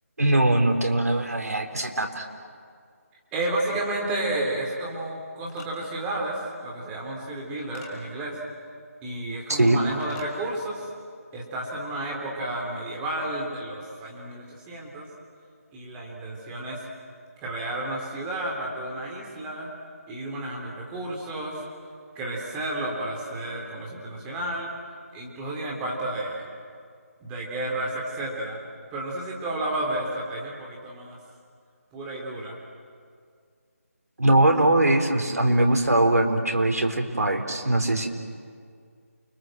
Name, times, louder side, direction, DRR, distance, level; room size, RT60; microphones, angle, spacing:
voice 1, 0.2-2.3 9.6-9.8 34.2-38.1, right 1 dB, 80° right, 4 dB, 4.0 m, -21 dB
voice 2, 3.3-8.4 9.0-10.9 11.3-15.1 15.7-16.9 17.4-19.7 20.1-21.6 22.2-24.7 25.1-26.5 27.2-28.6 28.9-31.2 31.9-32.6, right 1 dB, 10° right, -2 dB, 3.5 m, -31 dB
sound 1, 5.5-5.7 7.7-7.9 10.0-10.3, left 5 dB, 10° left, 2.8 m, -47 dB
29.5 x 23.0 x 7.9 m, 2.2 s
figure-of-eight pair, 165°, 8 cm